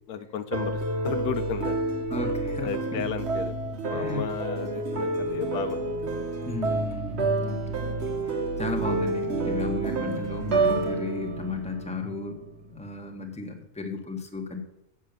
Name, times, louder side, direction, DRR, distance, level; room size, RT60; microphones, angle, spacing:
voice 1, 0.1-1.8 2.6-3.5 3.8-6.1, left 7 dB, 85° left, 10 dB, 1.2 m, -34 dB
sound 1, 0.5-12.6, right 2 dB, 50° right, 1.2 m, -29 dB
voice 2, 2.1-3.0 3.9-4.3 6.4-8.0 8.3-12.5 12.7-14.6, left 3 dB, 5° left, 3 dB, 1.1 m, -34 dB
7.4 x 6.8 x 6.7 m, 0.82 s
omnidirectional pair, 1.6 m